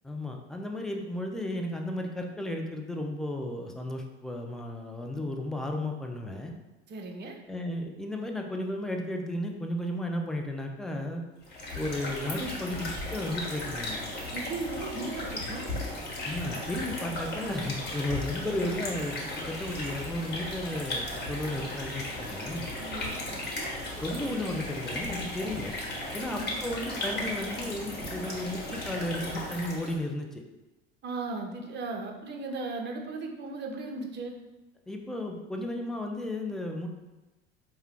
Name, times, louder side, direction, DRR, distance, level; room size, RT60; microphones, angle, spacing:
voice 1, 0.0-6.5 7.5-11.2 11.7-14.0 16.2-19.2 19.5-22.7 24.0-25.7 26.1-30.4 34.9-37.0, left 1 dB, ahead, 2 dB, 0.4 m, -34 dB
voice 2, 6.9-7.4 14.3-15.7 22.8-23.7 26.2-26.5 31.0-34.4, right 3 dB, 35° right, 2 dB, 0.7 m, -37 dB
sound 1, 11.4-30.0, left 1 dB, 30° left, 1.2 m, -36 dB
4.5 x 2.2 x 3.6 m, 1.1 s
hypercardioid pair, 70°, 32 cm